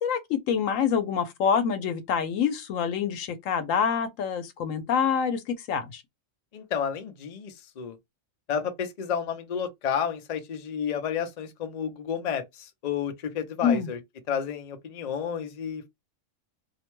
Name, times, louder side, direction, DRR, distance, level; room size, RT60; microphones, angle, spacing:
voice 1, 0.0-6.0 13.6-13.9, left 7 dB, 80° left, 1.0 m, -26 dB
voice 2, 6.5-8.0 8.5-14.0 14.3-15.9, left 7 dB, 50° left, 0.5 m, -31 dB
2.6 x 2.1 x 3.0 m
omnidirectional pair, 1.3 m